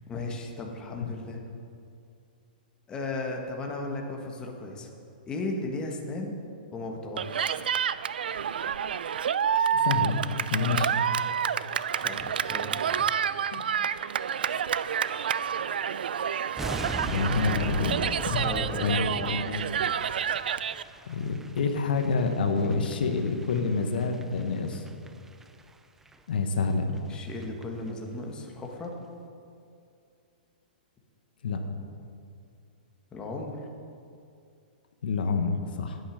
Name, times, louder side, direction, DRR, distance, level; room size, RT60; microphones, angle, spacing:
voice 1, 0.1-1.5 2.9-4.9 5.3-6.4 6.7-7.6 12.0-13.1 18.4-18.9 19.1-19.3 27.1-28.9 33.1-33.6, left 2 dB, 15° left, 1 dB, 1.5 m, -36 dB
Cheering, 7.2-20.8, right 8 dB, 80° right, 0.4 m, -29 dB
voice 2, 9.7-10.2 10.5-10.9 13.5-13.6 17.0-18.0 18.2-18.5 18.8-19.7 20.0-20.2 21.1-24.8 26.3-27.0 31.4-31.6 35.0-36.0, left 4 dB, 75° left, 5 dB, 1.2 m, -28 dB
sound 1, 16.6-25.7 26.0-26.2 26.6-26.7 27.0-27.1 27.3-27.6 27.9-28.0, right 2 dB, 5° right, 0.5 m, -40 dB
9.9 x 9.0 x 6.3 m, 2.5 s
hypercardioid pair, 140°, 5 cm